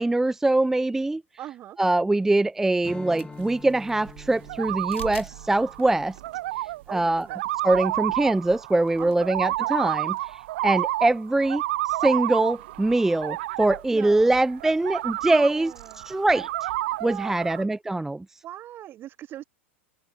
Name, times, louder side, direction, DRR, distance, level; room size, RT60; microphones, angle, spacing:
voice 1, 0.0-1.2 1.8-6.2 6.9-7.3 7.6-16.7 17.0-18.3, right 2 dB, 5° right, 0.6 m, -23 dB
voice 2, 1.4-1.8 5.8-6.0 6.9-7.4 9.0-9.3 13.9-14.4 15.3-16.1 17.0-17.7 18.4-19.4, right 12 dB, 30° right, 1.7 m, -40 dB
Strum, 2.8-7.5, left 4 dB, 10° left, 1.8 m, -47 dB
sound 1, 3.0-3.5 4.9-5.3 5.8-5.9 7.1-7.2 7.5-7.6 8.9-9.2, left 7 dB, 75° left, 5.0 m, -45 dB
sound 2, 3.4-17.6, right 17 dB, 55° right, 0.8 m, -30 dB
figure-of-eight pair, 95°, 7 cm